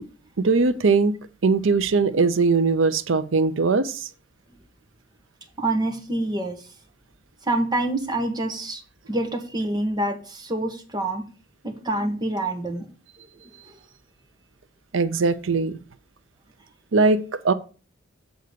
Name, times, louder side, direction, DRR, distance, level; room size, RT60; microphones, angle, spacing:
voice 1, 0.4-1.2 1.4-4.1 14.9-15.8 16.9-17.5, right 4 dB, 80° right, 0.6 m, -20 dB
voice 2, 5.6-6.6 7.4-8.8 9.1-11.3 11.6-12.9 13.7-13.8, right 1 dB, 20° right, 1.3 m, -26 dB
8.1 x 3.9 x 6.7 m
head